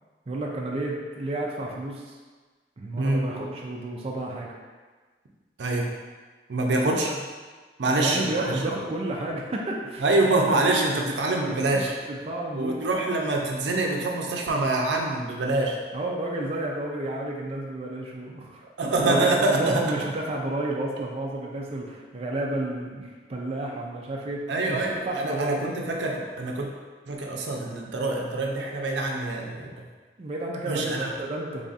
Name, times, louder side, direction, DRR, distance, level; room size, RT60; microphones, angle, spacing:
voice 1, 0.3-2.2 2.8-4.5 6.9-7.2 7.9-10.0 10.7-12.8 15.9-25.6 30.2-31.7, right 2 dB, 35° right, -1 dB, 0.4 m, -31 dB
voice 2, 3.0-3.5 5.6-5.9 6.5-7.1 7.8-8.6 10.0-11.9 12.5-15.8 18.8-19.8 24.5-26.7 27.1-29.7 30.7-31.1, right 2 dB, 85° right, 0 dB, 0.5 m, -25 dB
3.4 x 2.4 x 3.9 m, 1.4 s
head